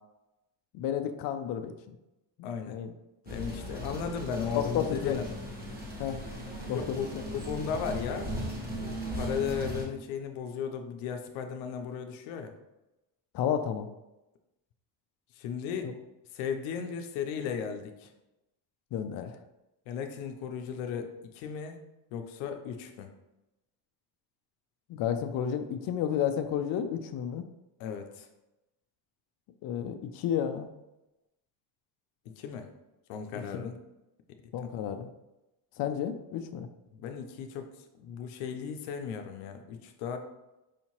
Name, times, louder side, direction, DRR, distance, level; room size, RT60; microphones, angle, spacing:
voice 1, 0.7-1.9 2.4-2.9 4.5-5.2 6.0-6.2 6.7-7.0 13.3-13.9 15.8-15.9 18.9-19.4 24.9-27.4 29.6-30.7 33.5-33.6 34.5-35.1 35.8-36.7, left 9 dB, 55° left, 7 dB, 0.4 m, -31 dB
voice 2, 2.4-2.8 3.3-5.4 6.7-8.3 8.8-12.5 15.3-15.9 16.3-18.1 19.9-21.8 22.1-23.1 27.8-28.3 32.3-32.7 33.1-33.8 36.9-37.7 38.0-40.2, left 7 dB, 90° left, 6 dB, 0.7 m, -36 dB
sound 1, 3.3-9.9, equal, 20° right, 1.1 m, -38 dB
4.9 x 2.7 x 2.9 m, 0.96 s
cardioid pair, 105°, 45 cm